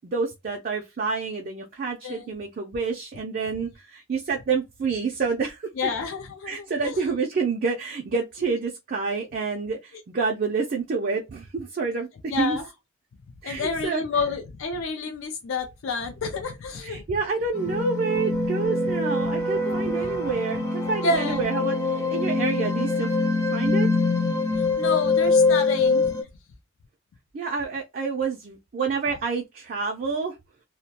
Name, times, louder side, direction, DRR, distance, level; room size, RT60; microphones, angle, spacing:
voice 1, 0.1-5.7 6.4-12.6 13.4-14.0 16.8-23.1 23.5-23.9 27.3-30.4, right 4 dB, 40° right, 0.4 m, -28 dB
voice 2, 5.8-7.0 12.3-12.7 13.4-17.0 19.6-19.8 21.0-21.5 24.5-26.1, left 4 dB, 70° left, 0.4 m, -29 dB
sound 1, 17.5-26.2, left 3 dB, 15° left, 0.5 m, -24 dB
2.2 x 2.1 x 2.7 m
head